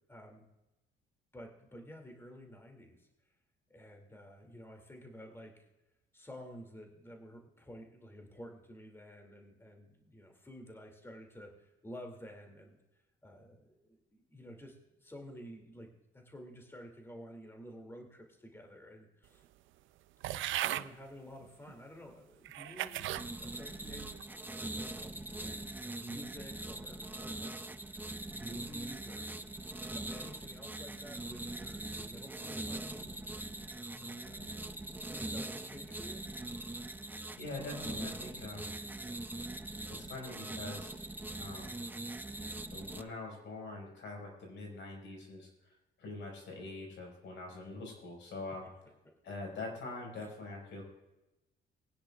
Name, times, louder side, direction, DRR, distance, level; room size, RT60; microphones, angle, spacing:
voice 1, 0.1-0.5 1.3-3.1 3.7-5.7 6.1-12.8 13.2-15.9 16.1-19.4 20.3-23.1 23.4-24.1 24.9-29.6 29.8-33.1 33.9-34.6 35.0-36.2 48.6-48.7 50.2-50.3, equal, 10° left, 2 dB, 2.5 m, -51 dB
sound 1, 20.2-20.9 21.7-21.8 22.5-23.3 23.8-24.2, right 13 dB, 75° right, 0.5 m, -36 dB
sound 2, 23.2-43.0, right 2 dB, 10° right, 0.6 m, -42 dB
voice 2, 37.4-38.7 39.9-40.9 41.3-41.8 42.7-45.5 46.0-48.7 49.2-50.8, left 2 dB, 70° left, 0 dB, 5.1 m, -44 dB
21.5 x 10.0 x 2.4 m, 0.98 s
cardioid pair, 90°, 20 cm